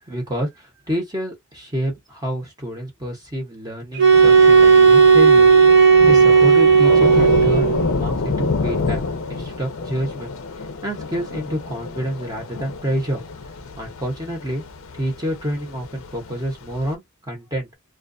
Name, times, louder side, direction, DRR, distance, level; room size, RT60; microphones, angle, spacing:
voice 1, 0.1-5.5 6.1-13.2 13.8-14.6 14.9-17.7, equal, 15° right, 0.9 m, -28 dB
sound 1, 4.0-7.9, right 5 dB, 50° right, 0.7 m, -12 dB
Thunder / Rain, 4.1-16.9, left 3 dB, 65° left, 0.5 m, -28 dB
2.3 x 2.2 x 2.5 m
head